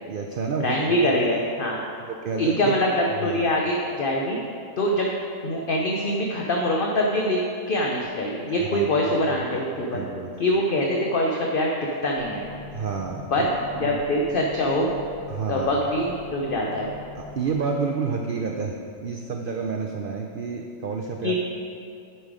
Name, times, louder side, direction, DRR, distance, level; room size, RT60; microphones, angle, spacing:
voice 1, 0.1-1.4 2.0-2.8 3.2-3.6 8.6-10.3 12.7-14.0 15.3-15.8 17.1-21.4, right 5 dB, 75° right, 2 dB, 0.5 m, -30 dB
voice 2, 0.6-1.8 2.4-4.4 4.8-5.1 5.4-7.4 7.7-10.0 10.4-11.7 12.0-12.5 13.3-14.9 15.5-16.9 21.2-21.4, left 1 dB, 50° left, -1 dB, 0.7 m, -24 dB
sound 1, 12.2-18.0, left 4 dB, 90° left, 1.4 m, -42 dB
9.4 x 5.5 x 4.9 m, 2.5 s
omnidirectional pair, 1.6 m